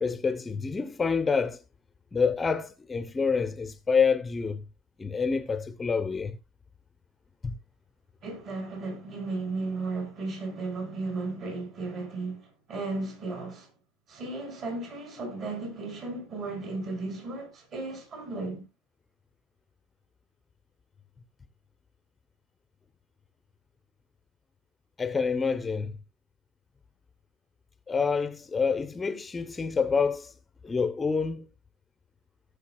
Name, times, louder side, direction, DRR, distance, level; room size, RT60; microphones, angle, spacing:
voice 1, 0.0-1.6 2.1-4.6 5.0-6.4 7.4-7.5 25.0-25.9 27.9-30.3 30.6-31.5, left 5 dB, 20° left, 0.8 m, -27 dB
voice 2, 8.2-13.7 14.1-18.7, right 3 dB, 45° right, 7.0 m, -35 dB
17.5 x 7.0 x 2.3 m
supercardioid pair, 105°, 0 cm